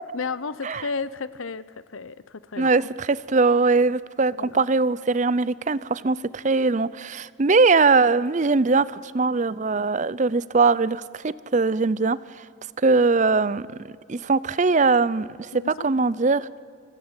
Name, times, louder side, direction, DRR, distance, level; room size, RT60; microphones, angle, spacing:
voice 1, 0.1-1.6 1.9-2.9 4.4-4.6 15.5-15.9, left 4 dB, 80° left, 17 dB, 0.8 m, -33 dB
voice 2, 2.6-12.2 12.8-13.7 14.1-16.5, right 4 dB, 35° right, 19 dB, 0.5 m, -21 dB
26.0 x 16.5 x 8.9 m, 2.3 s
head